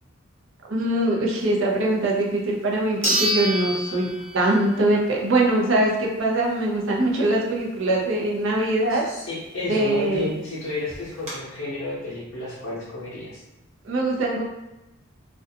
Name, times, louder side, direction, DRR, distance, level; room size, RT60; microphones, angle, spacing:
voice 1, 0.7-4.1 4.3-9.1 9.7-10.3 13.8-14.4, right 1 dB, 65° right, -2 dB, 0.5 m, -22 dB
sound 1, 2.2-2.3 3.0-4.8 5.2-5.3 9.9-10.0 10.2-10.3 10.9-11.3, equal, 30° right, 0.8 m, -26 dB
voice 2, 8.9-13.4, left 2 dB, 65° left, -10 dB, 0.7 m, -31 dB
2.4 x 2.2 x 2.7 m, 0.96 s
head